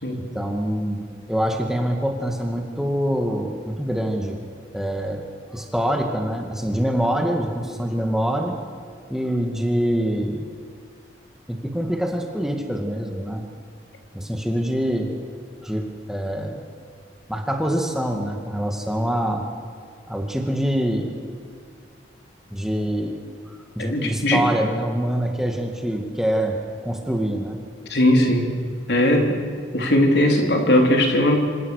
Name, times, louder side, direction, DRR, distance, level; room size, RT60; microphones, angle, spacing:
voice 1, 0.2-1.0 1.3-4.4 4.7-8.6 9.1-10.5 11.5-13.4 14.1-15.1 15.6-16.6 17.3-19.5 20.1-21.1 22.5-23.2 23.5-26.6 26.8-27.6, equal, ahead, 2 dB, 2.0 m, -25 dB
voice 2, 23.8-24.4 27.9-28.5 28.9-29.4 29.7-31.4, left 1 dB, 65° left, 2 dB, 3.7 m, -18 dB
27.5 x 26.5 x 6.6 m, 2.1 s
head